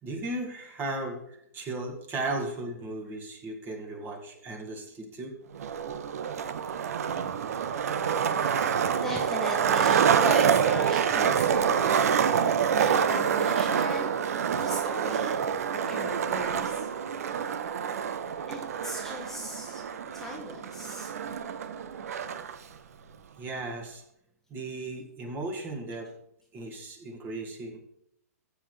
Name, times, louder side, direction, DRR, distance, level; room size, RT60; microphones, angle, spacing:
voice 1, 0.0-5.4 19.5-19.6 19.9-20.0 23.4-24.0 24.5-26.1 26.5-27.8, right 2 dB, 25° right, 3 dB, 2.1 m, -36 dB
Skateboard, 5.5-22.5, right 7 dB, 65° right, 0.8 m, -27 dB
voice 2, 8.3-14.2 14.6-15.4 15.7-16.9 18.5-19.8 20.1-21.1, equal, 5° left, -1 dB, 1.2 m, -38 dB
14.5 x 8.0 x 3.3 m, 0.77 s
hypercardioid pair, 130°, 9 cm